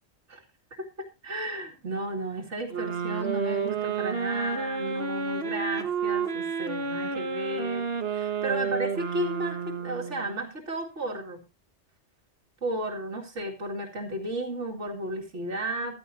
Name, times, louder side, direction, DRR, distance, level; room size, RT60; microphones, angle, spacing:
voice 1, 0.8-11.4 12.6-16.0, right 1 dB, 85° right, -2 dB, 2.6 m, -33 dB
sound 1, 2.7-10.4, right 5 dB, 60° right, 1.5 m, -30 dB
14.5 x 11.0 x 2.7 m, 0.28 s
omnidirectional pair, 1.2 m